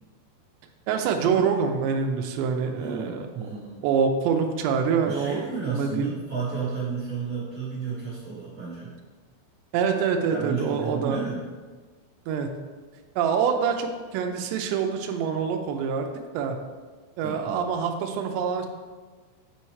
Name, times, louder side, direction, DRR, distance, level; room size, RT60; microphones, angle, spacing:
voice 1, 0.9-3.3 3.8-6.2 9.7-11.2 12.3-12.5 13.2-16.1 16.3-16.6 17.2-18.7, right 6 dB, 85° right, 4 dB, 2.5 m, -25 dB
voice 2, 2.7-3.8 5.0-8.9 10.3-11.4 17.2-17.6, right 5 dB, 50° right, -9 dB, 1.5 m, -32 dB
7.7 x 5.6 x 3.2 m, 1.4 s
omnidirectional pair, 5.6 m